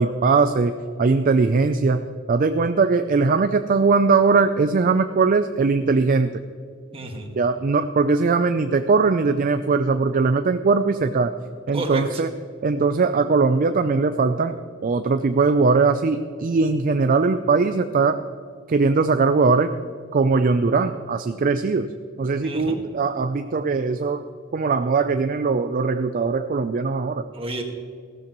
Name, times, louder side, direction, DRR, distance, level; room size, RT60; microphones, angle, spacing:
voice 1, 0.0-2.0 2.3-6.4 7.4-11.3 11.7-12.3 12.6-14.5 14.8-18.2 18.7-19.7 20.1-21.9 22.2-24.2 24.5-27.2, right 4 dB, 45° right, 9 dB, 0.4 m, -20 dB
voice 2, 6.9-7.3 11.7-12.2 22.4-22.8 27.3-27.6, right 2 dB, 30° right, 2 dB, 1.6 m, -30 dB
16.0 x 13.0 x 3.0 m, 2.3 s
head